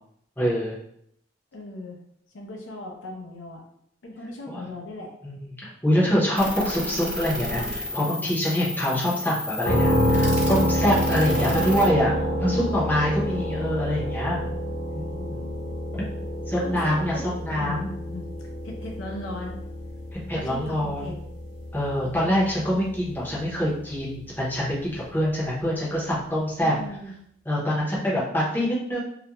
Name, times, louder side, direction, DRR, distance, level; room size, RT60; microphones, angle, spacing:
voice 1, 0.4-0.7 4.5-4.6 5.2-12.1 12.4-14.4 14.9-15.4 15.9-16.0 16.5-17.1 17.4-17.9 20.3-21.2 21.7-26.7 27.5-29.0, equal, 10° left, -7 dB, 0.6 m, -25 dB
voice 2, 1.5-2.0 2.3-3.6 4.0-5.1 11.3-12.5 16.6-18.3 18.6-19.6 20.3-21.2 26.6-27.1, left 2 dB, 85° left, 0 dB, 0.6 m, -38 dB
sound 1, 6.4-11.9, left 2 dB, 40° right, 0.5 m, -32 dB
sound 2, 9.6-23.4, equal, 40° left, 0.8 m, -28 dB
2.4 x 2.1 x 2.9 m, 0.71 s
head